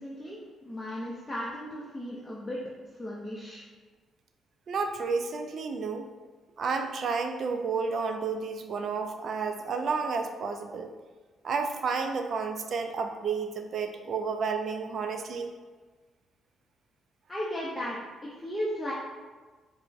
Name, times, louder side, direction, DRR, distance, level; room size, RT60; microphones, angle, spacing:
voice 1, 0.0-2.6 3.0-3.6 17.3-18.9, equal, 15° left, -6 dB, 0.5 m, -36 dB
voice 2, 4.7-6.1 6.6-10.9 11.4-15.5, right 5 dB, 55° right, 5 dB, 0.3 m, -31 dB
4.4 x 2.0 x 2.4 m, 1.4 s
cardioid pair, 90°, 0 cm